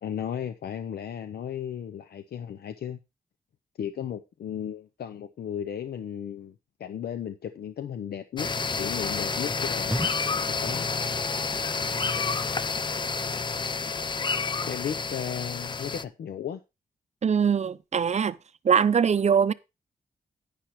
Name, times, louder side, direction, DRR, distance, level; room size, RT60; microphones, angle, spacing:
voice 1, 0.0-3.0 3.8-8.5 8.8-10.9 14.7-16.6, left 9 dB, 90° left, 0.6 m, -35 dB
sound 1, 8.4-16.0, left 4 dB, 30° left, 0.5 m, -29 dB
sound 2, 8.7-8.9 9.4-9.6 9.9-10.3 10.6-11.1 11.4-11.8 12.1-12.5 12.9-13.3 13.7-13.8, equal, 5° right, 0.7 m, -37 dB
voice 2, 17.2-18.4 18.6-19.5, right 7 dB, 45° right, 0.5 m, -22 dB
10.0 x 10.0 x 3.1 m
wide cardioid pair, 110°, 16 cm